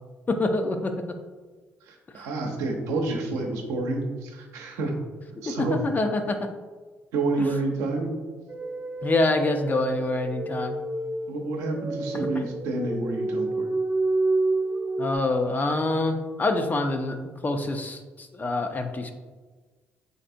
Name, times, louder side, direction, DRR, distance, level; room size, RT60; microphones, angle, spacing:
voice 1, 0.3-1.2 5.5-6.5 9.0-10.8 12.3-12.5 15.0-17.2 17.4-19.1, left 2 dB, 30° left, 6 dB, 0.5 m, -26 dB
voice 2, 1.9-5.0 5.4-5.8 7.1-8.1 11.3-13.7, right 3 dB, 85° right, 1 dB, 0.6 m, -29 dB
sound 1, 8.5-15.2, right 2 dB, 25° right, 0.5 m, -29 dB
3.9 x 3.3 x 2.6 m, 1.3 s
supercardioid pair, 60°, 5 cm